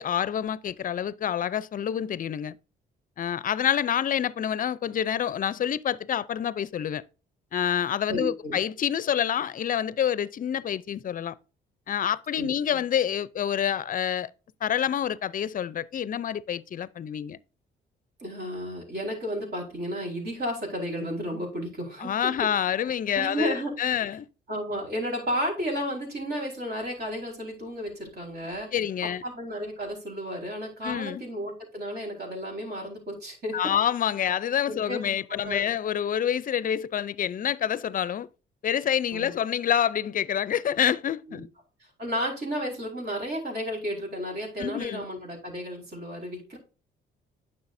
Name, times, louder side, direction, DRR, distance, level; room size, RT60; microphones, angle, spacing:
voice 1, 0.0-2.6 3.2-7.0 7.5-11.4 11.9-14.3 14.6-17.4 22.0-24.3 28.7-29.2 30.8-31.2 33.5-38.3 38.6-41.5 44.6-45.0, left 9 dB, 45° left, 0.5 m, -27 dB
voice 2, 8.1-8.6 12.4-12.8 18.2-22.1 23.1-23.7 24.5-28.8 29.2-33.6 34.7-35.7 39.1-39.4 41.4-41.5 41.8-46.6, equal, 55° right, 4.6 m, -33 dB
9.5 x 6.6 x 2.6 m
cardioid pair, 90°, 20 cm